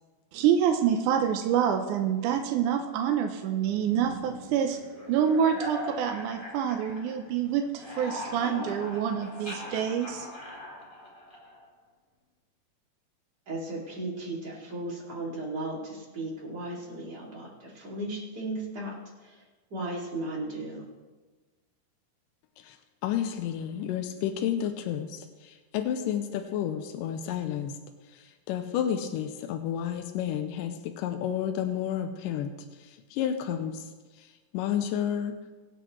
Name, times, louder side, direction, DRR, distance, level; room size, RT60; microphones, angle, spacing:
voice 1, 0.3-4.8 5.1-10.3, right 8 dB, 75° right, 5 dB, 2.0 m, -27 dB
sound 1, 3.9-7.4 7.7-11.7, left 1 dB, 20° left, 1.3 m, -41 dB
voice 2, 13.5-18.9 19.2-19.4 19.7-20.9, right 2 dB, 30° right, -4 dB, 2.8 m, -36 dB
voice 3, 23.0-27.8 28.1-32.5 32.8-33.9 34.2-34.3 34.5-35.4, left 9 dB, 85° left, 6 dB, 2.3 m, -31 dB
23.0 x 8.1 x 3.1 m, 1.3 s
omnidirectional pair, 3.9 m